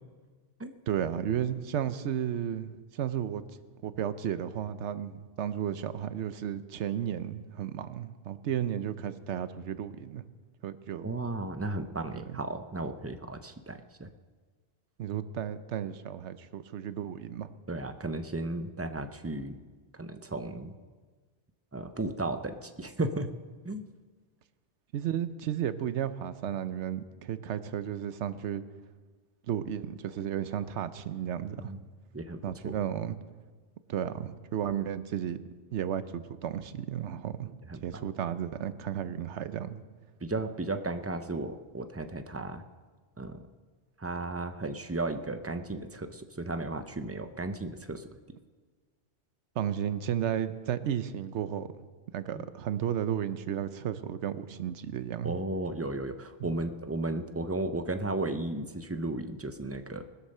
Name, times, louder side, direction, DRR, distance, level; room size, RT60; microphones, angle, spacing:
voice 1, 0.9-3.4 3.8-10.2 10.6-11.1 12.3-12.4 15.0-17.5 24.9-28.6 29.5-31.7 32.4-33.2 33.9-35.4 35.7-39.8 49.6-51.7 52.1-55.4 56.4-56.5, right 9 dB, 80° right, 13 dB, 1.0 m, -33 dB
voice 2, 11.0-14.1 17.7-19.6 19.9-20.7 21.7-23.3 23.6-23.8 31.6-31.8 32.1-32.8 37.7-38.0 40.2-42.6 43.2-43.5 44.0-48.1 52.4-52.5 55.2-60.0, right 2 dB, 20° right, 9 dB, 0.4 m, -34 dB
20.5 x 8.1 x 6.6 m, 1.4 s
omnidirectional pair, 1.2 m